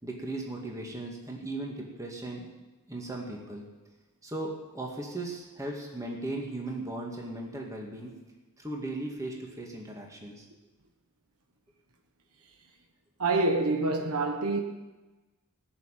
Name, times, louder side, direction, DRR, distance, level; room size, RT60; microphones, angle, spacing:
voice 1, 0.0-2.5 2.9-3.6 4.2-8.2 8.6-10.4, right 2 dB, 15° right, 2.1 m, -37 dB
voice 2, 13.2-14.6, right 2 dB, 85° right, 1.4 m, -26 dB
17.5 x 7.1 x 9.1 m
head